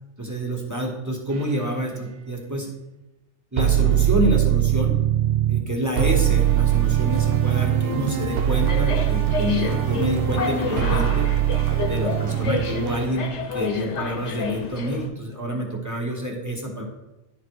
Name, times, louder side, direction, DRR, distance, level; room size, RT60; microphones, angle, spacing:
voice 1, 0.2-2.7 3.5-4.9 5.5-11.3 11.8-13.3 13.5-16.8, equal, 15° right, 0 dB, 1.1 m, -27 dB
sound 1, 1.3-1.5 3.6-5.6 6.0-13.1, right 12 dB, 60° right, 0.7 m, -22 dB
sound 2, 6.2-15.1, left 4 dB, 70° left, 1.1 m, -32 dB
10.0 x 3.9 x 4.6 m, 0.97 s
omnidirectional pair, 1.3 m